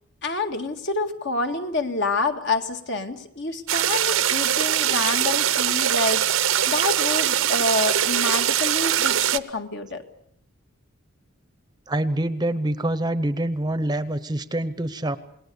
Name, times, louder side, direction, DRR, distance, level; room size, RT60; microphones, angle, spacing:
voice 1, 0.2-10.0, left 3 dB, 55° left, 5 dB, 2.0 m, -27 dB
sound 1, 3.7-9.4, right 10 dB, 75° right, 0.8 m, -22 dB
voice 2, 11.9-15.2, right 1 dB, 20° right, 13 dB, 0.8 m, -25 dB
28.5 x 19.5 x 7.1 m, 0.71 s
head